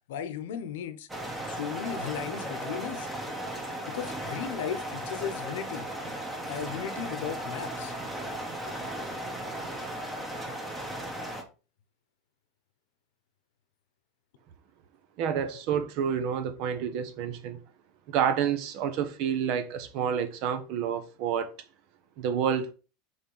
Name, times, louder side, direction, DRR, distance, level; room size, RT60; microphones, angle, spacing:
voice 1, 0.1-1.1 1.5-3.1 3.9-5.9 6.5-7.9, left 8 dB, 85° left, 1.0 m, -36 dB
sound 1, 1.1-11.4, right 1 dB, 5° right, 1.1 m, -36 dB
voice 2, 15.2-17.6 18.1-21.5 22.2-22.7, right 8 dB, 50° right, 1.0 m, -29 dB
5.2 x 4.0 x 5.5 m
supercardioid pair, 155°, 0 cm